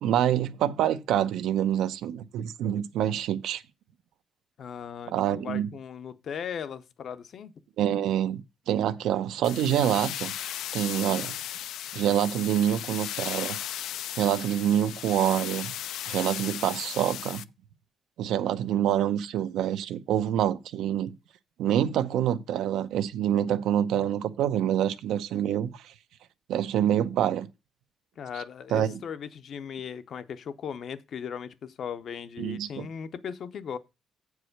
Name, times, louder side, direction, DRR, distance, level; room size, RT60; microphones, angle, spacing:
voice 1, 0.0-3.6 5.1-5.7 7.8-10.3 10.7-11.4 11.9-13.6 14.1-15.8 16.1-17.4 18.2-21.1 21.6-25.9 26.5-27.5 28.7-29.0 32.4-32.9, right 10 dB, 85° right, 0.7 m, -26 dB
voice 2, 4.6-7.5 28.2-33.8, left 7 dB, 55° left, 0.7 m, -38 dB
sound 1, 9.4-17.4, left 11 dB, 85° left, 0.4 m, -36 dB
7.6 x 4.8 x 6.4 m
cardioid pair, 125°, 0 cm